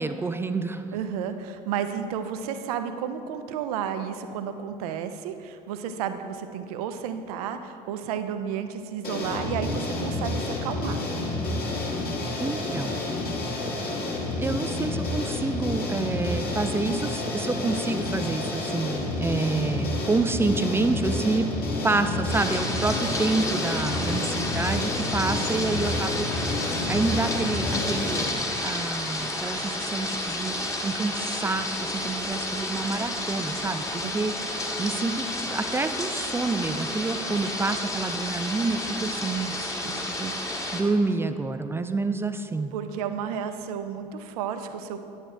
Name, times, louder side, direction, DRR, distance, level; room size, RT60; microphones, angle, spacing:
voice 1, 0.0-0.9 12.4-13.0 14.4-21.5 21.8-28.3 28.6-42.7, right 3 dB, 10° right, 10 dB, 0.3 m, -28 dB
voice 2, 0.9-11.0 23.9-24.3 34.0-34.4 42.7-45.0, right 8 dB, 65° right, 9 dB, 0.5 m, -32 dB
sound 1, 9.0-28.2, left 2 dB, 50° left, 1.7 m, -29 dB
sound 2, 22.3-40.8, left 1 dB, 15° left, 1.2 m, -31 dB
9.7 x 8.0 x 3.2 m, 2.7 s
figure-of-eight pair, 55°, 21 cm